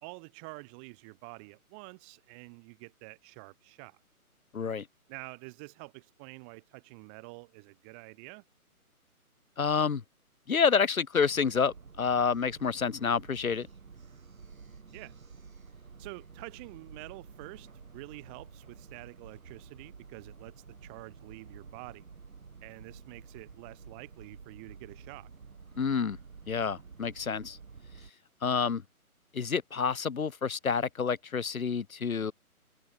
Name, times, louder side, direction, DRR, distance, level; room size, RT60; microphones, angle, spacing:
voice 1, 0.0-4.0 5.1-8.4 14.9-15.1 16.0-22.1 22.6-25.3, right 36 dB, 5° right, 0.8 m, -48 dB
voice 2, 4.5-4.9 9.6-10.0 10.5-13.7 25.8-26.2 26.5-27.6 28.4-28.8 29.3-32.3, left 6 dB, 65° left, 1.7 m, -28 dB
sound 1, 11.2-28.1, right 5 dB, 65° right, 6.8 m, -51 dB
figure-of-eight pair, 145°, 45 cm